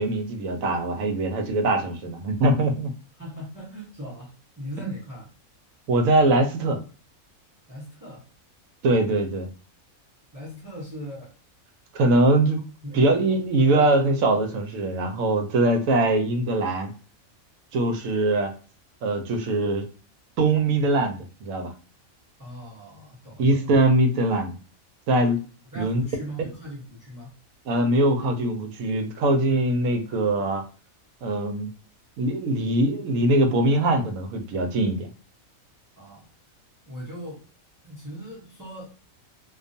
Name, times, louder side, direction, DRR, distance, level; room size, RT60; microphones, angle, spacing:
voice 1, 0.0-2.9 5.9-6.8 8.8-9.5 11.9-12.6 12.9-16.9 17.7-18.5 19.0-19.9 20.4-21.7 23.4-24.6 25.1-25.4 25.7-26.0 27.7-30.6 31.2-31.7 32.2-35.1, right 2 dB, 75° right, 5 dB, 1.0 m, -22 dB
voice 2, 3.2-5.3 7.7-8.2 10.3-11.3 12.8-13.4 22.4-23.7 25.7-27.3 36.0-36.3 36.9-37.4 37.8-39.0, equal, 20° right, -4 dB, 0.7 m, -39 dB
2.4 x 2.3 x 2.6 m, 0.36 s
omnidirectional pair, 1.5 m